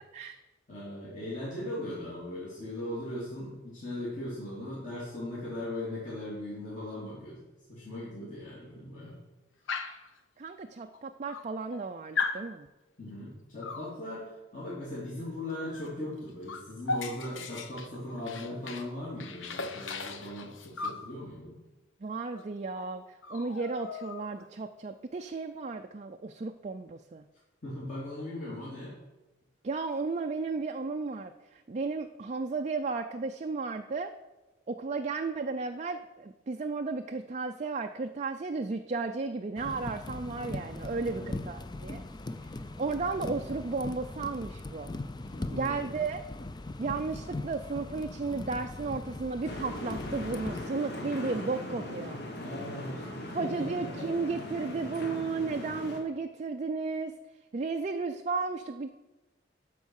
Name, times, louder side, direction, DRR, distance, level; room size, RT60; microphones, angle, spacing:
voice 1, 0.7-7.4 7.7-9.2 13.0-21.6 27.6-28.9 41.1-41.4 45.3-45.9 52.4-54.1, left 1 dB, 40° left, -9 dB, 3.2 m, -39 dB
Dog, 9.7-10.1 10.9-11.0 11.3-11.8 12.2-12.5 13.6-13.9 15.7-15.9 16.2-18.9 19.2-21.1 22.3-22.5 22.8-22.9 23.2-24.5, left 4 dB, 85° left, 0.9 m, -37 dB
voice 2, 10.4-12.7 22.0-27.3 29.6-34.1 34.7-42.0 42.8-44.9 45.5-46.2 46.8-52.2 53.3-57.1 57.5-58.9, right 4 dB, 35° right, 6 dB, 0.4 m, -34 dB
sound 1, 39.6-50.6, left 2 dB, 20° left, 0.4 m, -40 dB
sound 2, 49.4-56.0, left 1 dB, 55° left, 1.6 m, -40 dB
12.5 x 4.6 x 6.4 m, 1.1 s
head